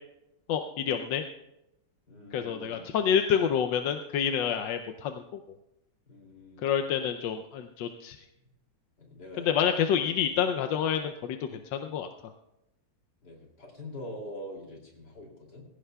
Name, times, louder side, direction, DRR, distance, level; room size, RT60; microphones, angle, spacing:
voice 1, 0.5-1.2 2.3-5.2 6.6-8.2 9.4-12.1, left 8 dB, 70° left, 6 dB, 1.2 m, -28 dB
voice 2, 2.1-2.8 6.1-6.8 9.0-9.5 13.2-15.7, left 1 dB, 55° left, 0 dB, 3.4 m, -44 dB
20.0 x 16.5 x 2.3 m, 0.88 s
omnidirectional pair, 2.3 m